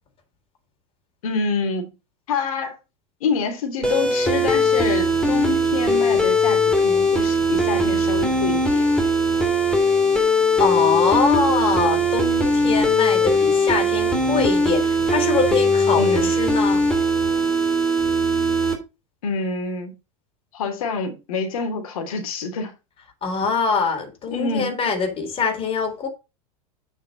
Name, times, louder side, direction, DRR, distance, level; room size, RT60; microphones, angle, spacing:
voice 1, 1.2-1.9 2.3-2.8 3.2-8.9 16.0-16.3 19.2-19.9 20.5-22.7 24.3-24.8, left 4 dB, 85° left, 3.1 m, -26 dB
sound 1, 3.8-18.7, equal, 5° left, 3.4 m, -20 dB
voice 2, 10.6-16.9 23.2-26.1, left 5 dB, 30° left, 3.9 m, -23 dB
9.7 x 5.9 x 5.3 m
supercardioid pair, 120°, 18 cm